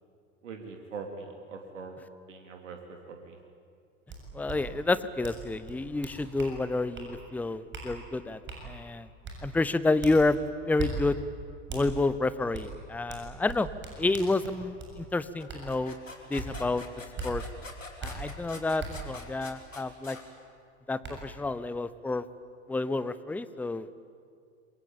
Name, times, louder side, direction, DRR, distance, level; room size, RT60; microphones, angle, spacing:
voice 1, 0.4-2.0 2.3-3.4, right 4 dB, 70° right, 4 dB, 3.1 m, -42 dB
sound 1, 4.1-4.2 4.5-4.6 5.2-5.4 5.7-6.5 6.9-7.1 7.7-7.9 8.5-8.6 9.2-9.4 10.0-10.2 10.8-10.9 11.7-11.8 12.5-12.7 13.1-14.9 15.5-15.6 16.4-16.5 17.2-17.3 18.0-18.1 18.8-18.9 20.4-20.5 21.0-21.1, right 4 dB, 30° right, 7.4 m, -38 dB
voice 2, 4.3-9.1 9.4-11.2 11.7-13.7 14.0-16.0 16.3-16.8 17.2-17.4 18.0-20.2 20.9-22.3 22.7-24.0, left 2 dB, 5° left, 16 dB, 0.8 m, -29 dB
sound 2, 15.4-20.2, left 3 dB, 90° left, 3.2 m, -45 dB
27.0 x 23.5 x 8.9 m, 2.3 s
figure-of-eight pair, 85°, 38 cm